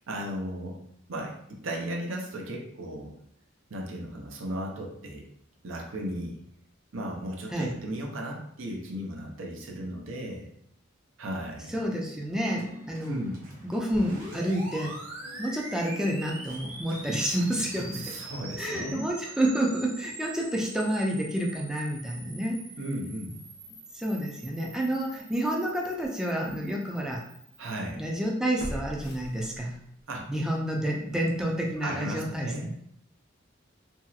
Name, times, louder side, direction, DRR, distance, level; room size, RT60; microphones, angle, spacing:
voice 1, 0.1-0.8 1.1-3.1 3.7-5.2 5.6-6.4 6.9-10.5 11.2-11.8 13.1-13.4 17.9-19.1 22.7-23.3 27.6-28.0 30.1-30.3 31.8-32.7, right 1 dB, 90° right, 0 dB, 0.6 m, -35 dB
voice 2, 11.7-13.2 13.6-15.0 15.4-18.2 18.6-22.6 23.9-27.2 28.0-29.8 30.3-32.7, right 1 dB, 5° right, -1 dB, 0.4 m, -29 dB
Organ, 12.5-19.1, equal, 45° right, 0.7 m, -48 dB
sound 1, 13.9-27.8, right 2 dB, 70° right, 1.0 m, -44 dB
sound 2, 25.3-25.4 26.0-26.1 28.6-30.0 30.4-30.5, equal, 55° left, 0.6 m, -39 dB
2.9 x 2.7 x 2.4 m, 0.71 s
head